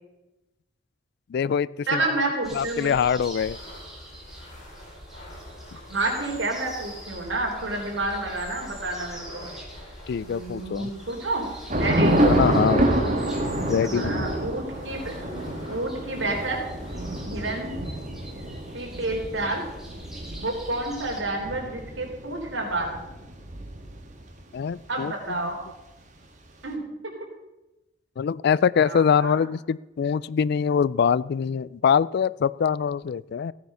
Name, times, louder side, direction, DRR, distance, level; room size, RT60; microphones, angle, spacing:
voice 1, 1.3-2.0 2.5-3.6 10.1-10.9 12.0-12.9 13.7-14.3 24.5-25.4 28.2-33.5, left 7 dB, 60° left, 21 dB, 0.3 m, -24 dB
voice 2, 1.9-2.9 5.9-9.4 10.2-11.5 11.8-12.2 13.8-15.1 15.7-16.6 17.2-17.8 18.7-19.7 20.4-23.0 24.9-25.6 26.6-26.8 28.8-29.5, right 2 dB, 70° right, 1 dB, 3.5 m, -29 dB
sound 1, 2.4-21.2, right 1 dB, ahead, 2.8 m, -44 dB
sound 2, 3.3-17.2, equal, 45° left, 5.7 m, -46 dB
Thunder / Rain, 11.7-24.2, right 1 dB, 40° right, 1.7 m, -27 dB
15.5 x 9.2 x 5.5 m, 1.0 s
head